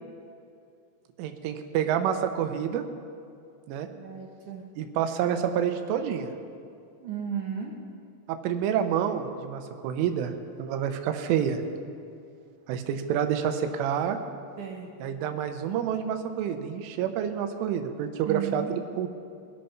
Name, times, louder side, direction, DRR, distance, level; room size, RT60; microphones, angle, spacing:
voice 1, 1.2-2.8 3.7-3.9 4.8-6.3 8.3-10.3 10.6-11.6 12.7-14.2 15.0-19.1, right 9 dB, 85° right, 7 dB, 3.4 m, -28 dB
voice 2, 3.9-4.6 7.0-7.7 14.6-14.9 18.3-18.7, right 8 dB, 70° right, 0 dB, 2.0 m, -34 dB
23.0 x 8.6 x 5.8 m, 2.4 s
omnidirectional pair, 5.6 m